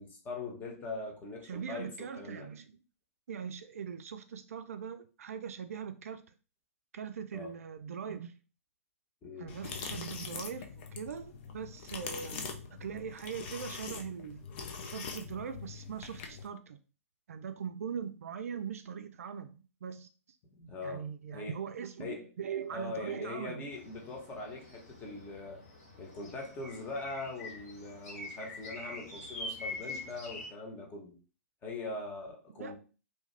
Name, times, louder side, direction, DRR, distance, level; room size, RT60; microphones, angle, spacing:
voice 1, 0.0-2.5 7.3-7.5 9.2-9.5 20.6-21.1 21.3-21.6 22.0-22.3 22.7-25.6 26.0-31.2 31.6-32.8, left 3 dB, 20° left, 1.0 m, -41 dB
voice 2, 1.4-2.7 3.3-6.2 6.9-8.4 9.4-14.4 14.9-16.8 17.3-20.1 20.8-23.7 32.6-32.8, right 7 dB, 65° right, 0.4 m, -41 dB
sound 1, 9.5-16.5, left 5 dB, 45° left, 0.6 m, -43 dB
sound 2, 23.7-30.5, left 2 dB, 70° left, 1.7 m, -45 dB
2.8 x 2.3 x 3.2 m
figure-of-eight pair, 115°, 8 cm